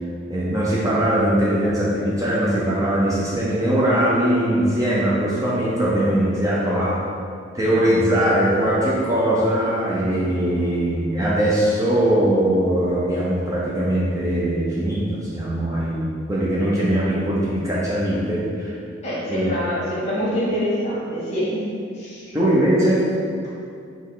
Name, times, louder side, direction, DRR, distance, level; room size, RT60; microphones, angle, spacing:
voice 1, 0.3-7.0 7.5-18.8 19.3-19.5 22.3-23.1, right 1 dB, 20° right, -7 dB, 0.6 m, -21 dB
voice 2, 19.0-21.7 21.9-22.3, equal, 35° left, -8 dB, 1.4 m, -25 dB
4.4 x 3.0 x 3.8 m, 2.3 s
head